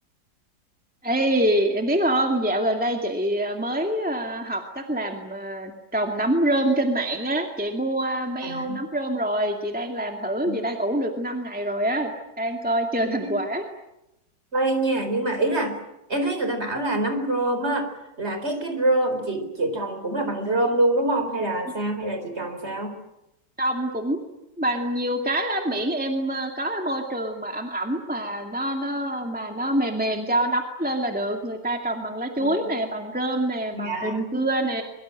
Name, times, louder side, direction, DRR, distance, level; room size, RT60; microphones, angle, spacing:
voice 1, 1.0-12.1 12.4-13.7 23.6-24.3 24.6-34.8, right 1 dB, 5° right, 3 dB, 2.2 m, -25 dB
voice 2, 8.4-8.8 10.5-10.6 13.2-13.4 14.5-15.7 16.1-17.9 18.2-23.0 32.4-32.5 33.7-34.2, right 2 dB, 35° right, 7 dB, 4.5 m, -25 dB
24.0 x 23.5 x 9.0 m, 0.90 s
omnidirectional pair, 2.1 m